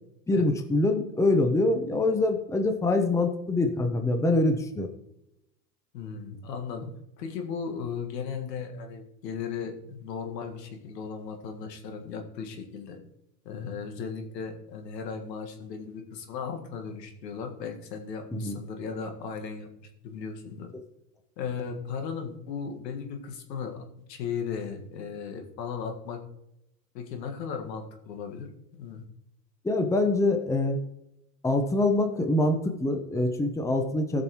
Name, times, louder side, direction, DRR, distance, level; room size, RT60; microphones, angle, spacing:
voice 1, 0.3-4.9 18.3-18.6 29.6-30.8 31.4-34.2, left 2 dB, 5° left, 6 dB, 0.9 m, -25 dB
voice 2, 5.9-6.9 7.2-13.0 13.5-20.7 21.4-26.2 26.9-28.5 28.8-29.0, left 6 dB, 75° left, 4 dB, 1.9 m, -36 dB
15.5 x 6.1 x 3.0 m, 0.84 s
hypercardioid pair, 100°, 50 cm